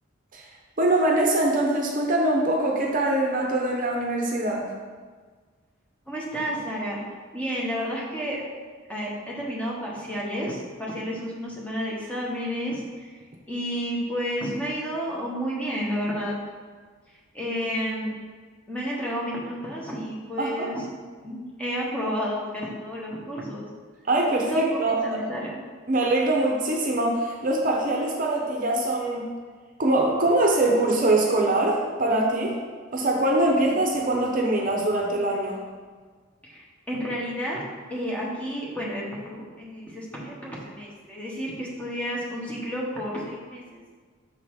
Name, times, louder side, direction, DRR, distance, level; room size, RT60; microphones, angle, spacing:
voice 1, 0.8-4.6 20.4-20.7 24.1-25.0 25.9-29.3 29.8-32.6 32.9-35.6, right 2 dB, 40° right, 0 dB, 0.7 m, -23 dB
voice 2, 6.1-7.0 7.3-8.4 8.9-13.2 13.5-16.4 17.1-18.1 18.7-20.9 21.2-23.7 24.3-25.5 36.4-43.8, equal, 5° left, -5 dB, 1.1 m, -31 dB
6.1 x 3.8 x 4.7 m, 1.5 s
head